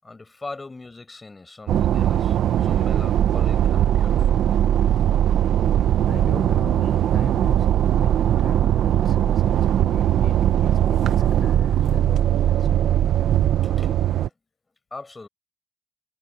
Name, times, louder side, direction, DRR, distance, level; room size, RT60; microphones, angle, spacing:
voice 1, 0.0-4.3 13.6-13.9 14.9-15.3, left 3 dB, 25° left, 6.6 m, -40 dB
sound 1, 1.7-14.3, right 11 dB, 75° right, 0.9 m, -20 dB
voice 2, 5.3-5.6 5.9-12.8, left 7 dB, 55° left, 6.6 m, -40 dB
cardioid pair, 90°, 0 cm